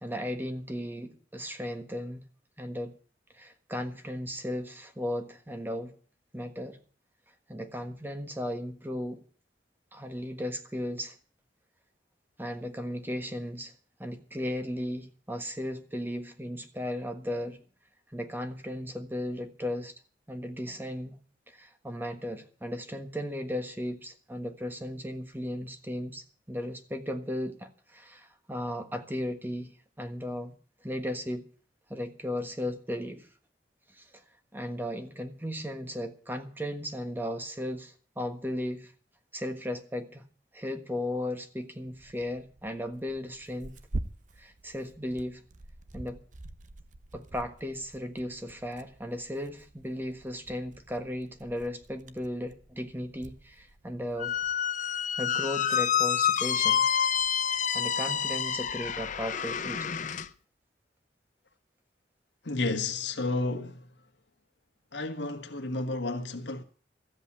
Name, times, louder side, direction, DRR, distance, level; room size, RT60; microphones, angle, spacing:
voice 1, 0.0-2.2 2.6-3.0 3.3-5.9 6.3-6.8 7.5-9.2 9.9-11.2 12.4-13.7 14.0-17.6 18.1-19.9 20.3-21.2 21.5-29.7 30.0-30.5 30.8-31.4 31.9-33.3 33.9-34.2 34.5-38.9 39.3-40.2 40.5-43.8 44.4-45.4 45.9-46.2 47.1-54.3 54.9-56.8 57.7-59.9, left 1 dB, 10° right, 1.4 m, -36 dB
Tearing, 41.9-54.5, right 2 dB, 45° right, 0.9 m, -45 dB
Squeak, 54.2-60.3, left 8 dB, 45° left, 0.7 m, -28 dB
voice 2, 62.4-63.8 64.9-66.6, left 2 dB, 85° left, 1.6 m, -31 dB
14.0 x 8.1 x 8.7 m
head